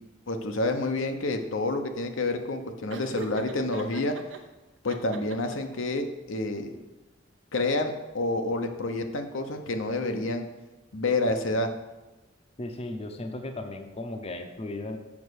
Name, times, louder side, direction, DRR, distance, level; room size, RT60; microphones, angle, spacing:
voice 1, 0.3-4.2 4.8-6.8 7.5-10.4 10.9-11.7, left 2 dB, 85° left, 5 dB, 0.9 m, -28 dB
Laughter, 2.9-4.4 4.9-5.8, right 3 dB, 70° right, 0.8 m, -41 dB
voice 2, 12.6-15.0, left 2 dB, 30° left, 6 dB, 0.7 m, -36 dB
7.3 x 5.5 x 6.4 m, 1.1 s
head